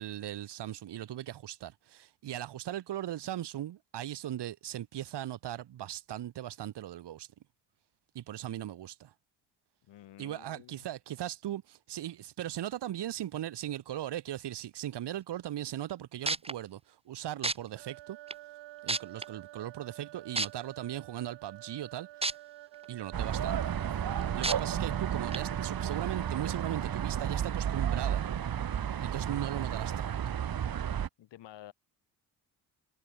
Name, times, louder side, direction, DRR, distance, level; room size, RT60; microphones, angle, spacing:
voice 1, 0.0-7.3 8.1-9.1 10.2-18.2 18.8-22.1 22.9-23.7 24.3-28.3 29.0-30.2, right 12 dB, 70° right, 2.1 m, -38 dB
voice 2, 9.9-10.9 31.2-31.7, left 13 dB, 80° left, 4.1 m, -51 dB
sound 1, 15.9-16.0 16.3-16.5 17.4-17.5 18.3-18.4 18.9-19.2 20.4-20.5 22.2-22.3 22.8-22.9 24.4-24.5 25.3-25.4, right 3 dB, 15° right, 1.2 m, -29 dB
sound 2, 17.8-27.7, right 17 dB, 90° right, 2.6 m, -49 dB
sound 3, 23.1-31.1, right 9 dB, 55° right, 1.9 m, -32 dB
supercardioid pair, 65°, 42 cm